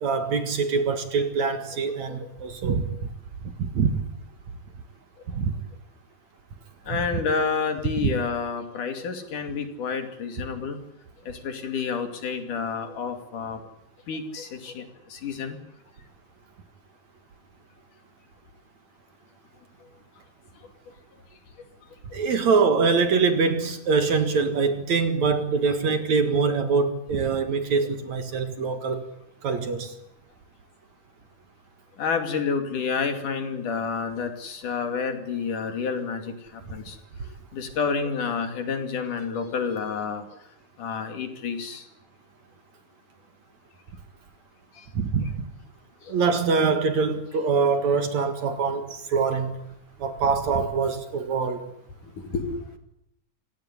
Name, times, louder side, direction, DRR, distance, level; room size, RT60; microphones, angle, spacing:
voice 1, 0.0-3.0 3.6-4.0 5.3-5.6 6.9-7.0 8.0-8.1 22.1-29.1 29.4-29.9 44.9-45.5 46.1-49.6 50.0-51.7, right 5 dB, 55° right, 2.8 m, -24 dB
voice 2, 6.9-10.8 11.3-13.6 14.1-15.6 32.0-37.0 37.5-40.3 40.8-41.9 44.8-44.9 46.0-46.1 52.0-52.8, left 5 dB, 60° left, 4.0 m, -29 dB
27.5 x 17.0 x 10.0 m
omnidirectional pair, 4.1 m